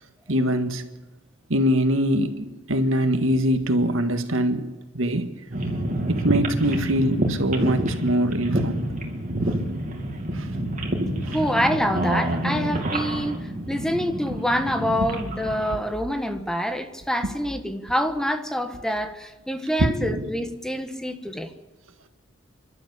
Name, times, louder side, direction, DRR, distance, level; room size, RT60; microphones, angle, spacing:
voice 1, 0.3-0.8 1.5-4.7 4.9-5.3 6.1-8.9 10.3-10.5 11.2-11.4 19.8-20.3, equal, 85° right, 1.9 m, -23 dB
sound 1, 5.5-15.7, right 1 dB, 40° right, 2.8 m, -27 dB
voice 2, 11.3-21.5, equal, 5° left, 1.3 m, -26 dB
29.5 x 12.0 x 8.4 m
head